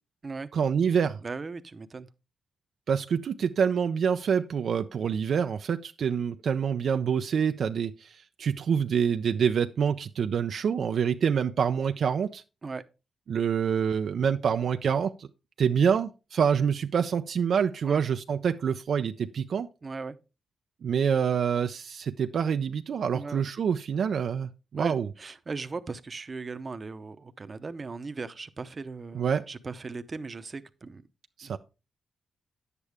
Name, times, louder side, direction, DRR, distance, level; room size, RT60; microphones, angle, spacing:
voice 1, 0.5-1.2 2.9-12.4 13.3-15.3 15.6-19.7 20.8-25.1 29.1-29.4 31.4-31.6, right 7 dB, 70° right, 0.5 m, -26 dB
voice 2, 1.2-2.1 12.6-12.8 17.8-18.0 19.8-20.2 23.1-23.4 24.7-31.1 31.4-31.6, right 4 dB, 35° right, 0.8 m, -38 dB
9.9 x 8.2 x 3.5 m
cardioid pair, 90°, 0 cm